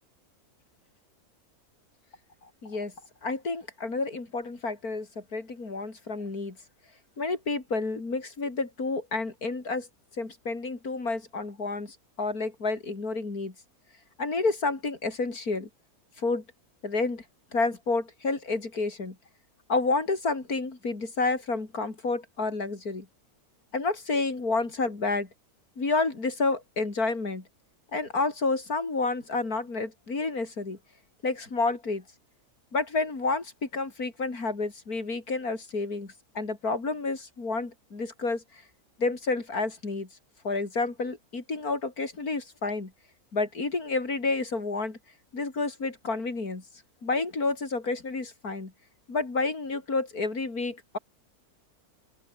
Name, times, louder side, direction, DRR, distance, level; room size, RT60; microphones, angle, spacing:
voice 1, 2.6-2.9 3.2-6.6 7.2-9.9 10.2-13.5 14.2-15.7 16.2-16.4 16.8-17.2 17.5-19.2 19.7-23.1 23.7-25.3 25.8-27.4 27.9-30.8 31.2-32.0 32.7-38.4 39.0-40.1 40.4-42.9 43.3-45.0 45.3-46.6 47.0-48.7 49.1-51.0, left 3 dB, 75° left, 4.4 m, -30 dB
open air
omnidirectional pair, 1.6 m